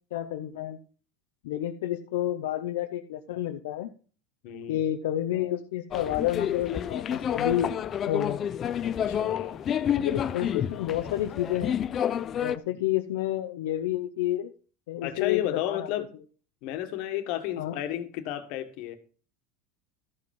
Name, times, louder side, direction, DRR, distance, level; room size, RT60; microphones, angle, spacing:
voice 1, 0.1-0.8 1.4-3.9 4.7-8.4 10.0-11.8 12.4-14.5 14.9-15.9 17.6-17.7, left 12 dB, 85° left, 5 dB, 0.7 m, -30 dB
voice 2, 4.4-4.8 8.8-9.6 15.0-16.1 16.6-19.0, left 12 dB, 65° left, 8 dB, 1.6 m, -32 dB
sound 1, 5.9-12.6, left 9 dB, 35° left, 0.6 m, -29 dB
13.5 x 5.3 x 5.4 m, 0.40 s
supercardioid pair, 120°, 0 cm